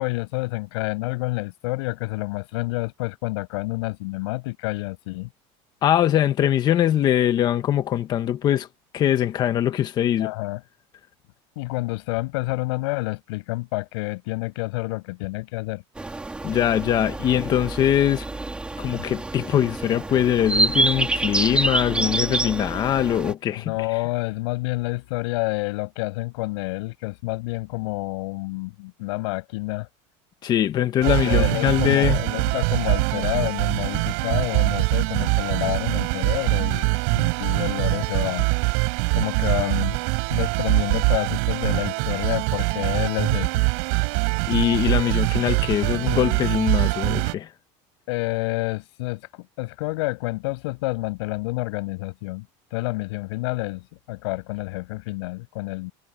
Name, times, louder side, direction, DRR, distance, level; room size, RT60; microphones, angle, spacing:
voice 1, 0.0-5.3 10.2-10.6 11.6-15.8 18.9-19.0 23.6-29.9 31.0-38.5 39.1-40.0 40.3-43.6 48.1-55.9, left 23 dB, 85° left, 6.9 m, -29 dB
voice 2, 5.8-8.7 8.9-10.3 16.4-18.2 18.8-23.7 30.4-32.2 44.5-47.5, left 11 dB, 30° left, 1.7 m, -22 dB
sound 1, 16.0-23.3, right 3 dB, 5° right, 4.4 m, -27 dB
sound 2, 31.0-47.3, right 39 dB, 65° right, 5.7 m, -23 dB
cardioid pair, 175°, 14 cm